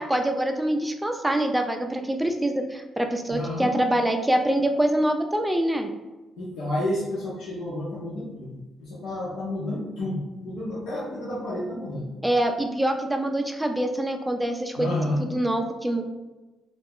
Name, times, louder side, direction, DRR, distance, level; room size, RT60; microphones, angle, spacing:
voice 1, 0.0-5.9 12.2-14.9 15.2-16.0, right 1 dB, 10° right, 4 dB, 0.3 m, -25 dB
voice 2, 3.3-3.8 6.4-12.1 14.8-15.2, left 1 dB, 85° left, -8 dB, 0.7 m, -30 dB
2.3 x 2.0 x 3.6 m, 1.1 s
cardioid pair, 90°, 0 cm